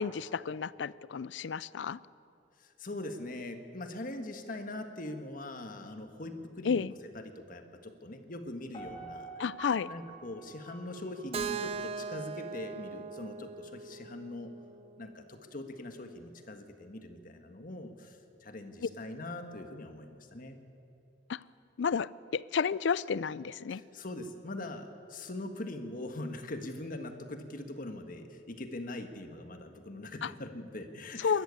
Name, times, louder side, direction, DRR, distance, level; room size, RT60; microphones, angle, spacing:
voice 1, 0.0-2.0 6.7-6.9 9.4-9.9 21.3-21.4 21.8-23.8 30.2-30.3 31.2-31.4, left 6 dB, 75° left, 20 dB, 0.4 m, -31 dB
voice 2, 2.6-9.3 9.9-14.5 15.0-20.6 23.7-31.4, left 1 dB, 50° left, 7 dB, 1.6 m, -42 dB
Piano, 8.7-11.8 12.3-12.4, right 2 dB, 30° left, 3.1 m, -47 dB
Keyboard (musical), 11.3-15.2, right 5 dB, 35° right, 0.5 m, -40 dB
21.0 x 13.5 x 9.6 m, 2.7 s
head